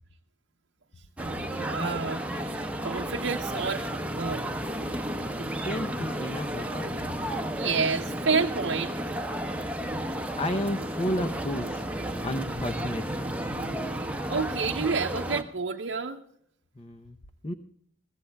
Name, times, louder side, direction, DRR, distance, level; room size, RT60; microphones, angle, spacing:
sound 1, 1.2-15.4, right 1 dB, 10° right, 1.0 m, -32 dB
voice 1, 1.5-4.4 7.5-8.9 14.3-16.2, right 5 dB, 75° right, 1 dB, 0.7 m, -29 dB
voice 2, 5.4-7.0 10.4-11.8 12.2-13.3 16.8-17.2 17.4-17.5, left 1 dB, 30° left, 7 dB, 0.7 m, -32 dB
22.5 x 15.5 x 2.3 m, 0.66 s
head